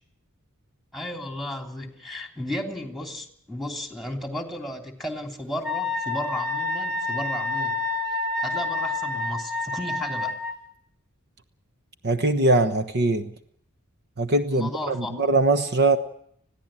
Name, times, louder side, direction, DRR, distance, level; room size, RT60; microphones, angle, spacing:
voice 1, 0.9-7.8 8.1-10.4 14.5-15.2, left 1 dB, ahead, 4 dB, 3.1 m, -34 dB
Wind instrument woodwind instrument, 5.6-10.5, left 3 dB, 65° right, 5.3 m, -28 dB
voice 2, 12.0-13.3 14.2-16.0, right 2 dB, 50° right, 8 dB, 1.2 m, -21 dB
21.0 x 15.0 x 9.0 m, 0.67 s
head